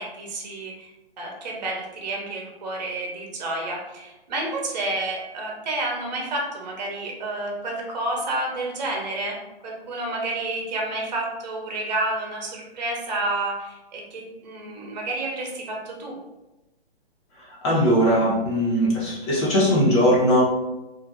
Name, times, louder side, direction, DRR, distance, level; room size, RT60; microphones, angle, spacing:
voice 1, 0.0-9.4 9.6-16.1, right 2 dB, 45° right, 0 dB, 0.8 m, -30 dB
voice 2, 17.6-20.6, equal, 25° left, -6 dB, 0.9 m, -19 dB
2.5 x 2.5 x 2.6 m, 1.0 s
hypercardioid pair, 150°, 31 cm